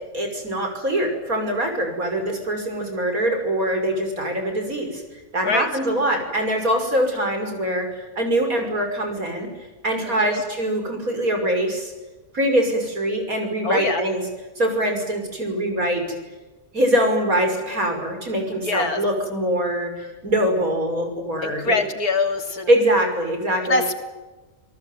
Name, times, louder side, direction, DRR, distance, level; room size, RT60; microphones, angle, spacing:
voice 1, 0.1-5.0 5.3-9.5 9.8-11.9 12.3-14.2 14.6-16.0 16.7-19.9 20.2-21.7 22.7-23.8, right 1 dB, 70° right, 4 dB, 6.4 m, -23 dB
voice 2, 10.0-10.4 13.6-14.0 18.6-19.0 21.4-22.7 23.6-24.0, left 3 dB, 85° left, 5 dB, 3.5 m, -23 dB
28.0 x 18.5 x 9.4 m, 1.2 s
omnidirectional pair, 1.6 m